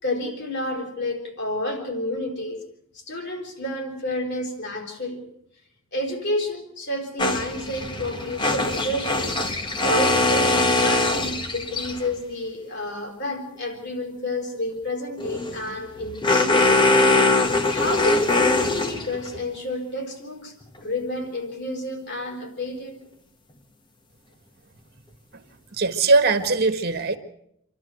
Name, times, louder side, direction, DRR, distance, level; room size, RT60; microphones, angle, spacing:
voice 1, 0.0-2.7 2.9-5.2 5.9-9.3 9.8-16.7 17.7-23.0, left 1 dB, 60° left, 2 dB, 4.9 m, -30 dB
sound 1, 7.2-12.1 15.2-19.4, left 2 dB, 25° left, 1.3 m, -22 dB
voice 2, 25.7-27.2, right 3 dB, 50° right, 9 dB, 1.7 m, -20 dB
27.5 x 12.5 x 8.0 m, 0.75 s
head